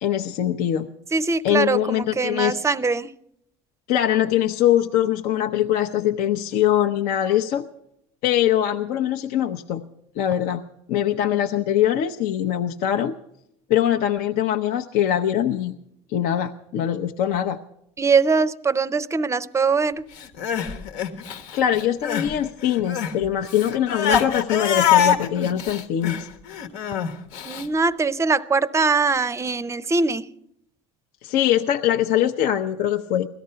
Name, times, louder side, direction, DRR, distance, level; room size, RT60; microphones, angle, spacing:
voice 1, 0.0-0.9 1.4-2.6 3.9-7.7 8.2-9.8 10.2-10.6 10.9-13.2 13.7-15.7 16.1-17.6 21.5-26.3 31.2-33.3, left 11 dB, 70° left, 0.7 m, -22 dB
voice 2, 1.1-3.1 18.0-20.1 27.4-30.3, right 4 dB, 20° right, 0.5 m, -22 dB
Crying sobbing, 20.2-22.3 22.6-27.7, left 8 dB, 85° left, 1.3 m, -24 dB
17.5 x 13.0 x 5.6 m
supercardioid pair, 110°, 15 cm